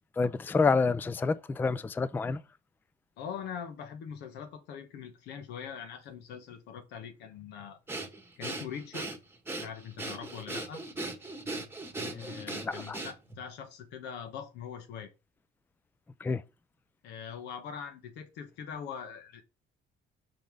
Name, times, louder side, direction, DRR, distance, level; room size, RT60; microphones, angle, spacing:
voice 1, 0.2-2.4 12.0-13.0 16.2-16.4, left 4 dB, 10° left, 0.3 m, -29 dB
voice 2, 3.2-7.8 8.4-9.1 9.6-10.8 12.1-15.1 17.0-19.4, left 7 dB, 85° left, 1.2 m, -42 dB
Breathing, 7.9-13.4, right 2 dB, 15° right, 1.2 m, -38 dB
5.3 x 3.9 x 4.7 m
cardioid pair, 110°, 17 cm